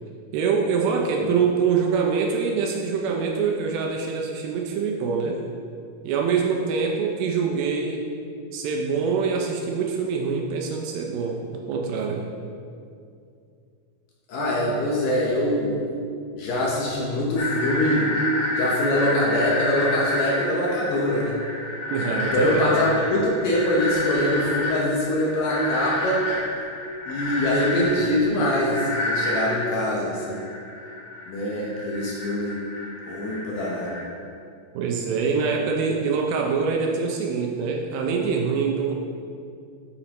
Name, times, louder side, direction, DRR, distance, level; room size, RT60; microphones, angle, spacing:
voice 1, 0.3-5.4 6.0-8.0 8.5-12.3 21.9-22.7 34.8-38.9, right 5 dB, 80° right, 1 dB, 2.3 m, -24 dB
voice 2, 14.3-15.8 16.4-18.1 18.6-21.4 22.1-26.2 27.1-30.4 31.3-32.6 33.1-33.9, left 1 dB, 70° left, -4 dB, 2.2 m, -24 dB
sound 1, 17.4-34.0, left 2 dB, 55° left, 2.5 m, -29 dB
8.5 x 7.1 x 3.0 m, 2.5 s
omnidirectional pair, 4.5 m